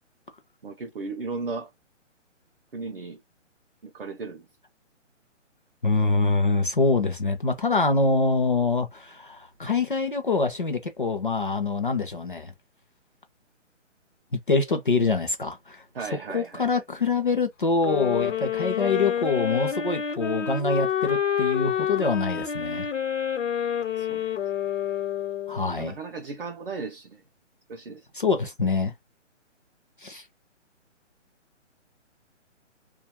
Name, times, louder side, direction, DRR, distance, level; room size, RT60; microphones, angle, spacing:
voice 1, 0.6-1.7 2.7-3.2 3.8-4.5 15.9-16.8 24.0-24.2 25.8-27.2 27.7-28.1, right 4 dB, 50° right, 0.5 m, -36 dB
voice 2, 5.8-12.5 14.3-15.8 16.3-22.9 25.5-26.0 28.1-28.9 30.0-30.3, left 3 dB, 45° left, 0.5 m, -25 dB
sound 1, 17.8-25.8, left 8 dB, 75° left, 0.8 m, -28 dB
2.3 x 2.2 x 2.8 m
hypercardioid pair, 180°, 37 cm